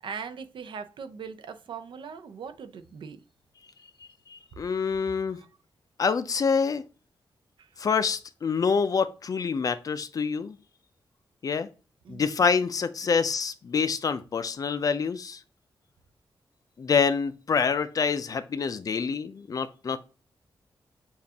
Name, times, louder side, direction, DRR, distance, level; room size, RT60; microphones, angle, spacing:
voice 1, 0.0-3.2 5.3-5.5 7.6-7.8 12.0-12.3 13.0-13.1, right 6 dB, 75° right, 0.6 m, -40 dB
voice 2, 4.3-5.4 6.0-6.8 7.8-10.6 11.4-11.7 12.1-15.4 16.8-20.0, left 5 dB, 45° left, 0.4 m, -26 dB
7.0 x 2.5 x 2.8 m
wide cardioid pair, 140°, 8 cm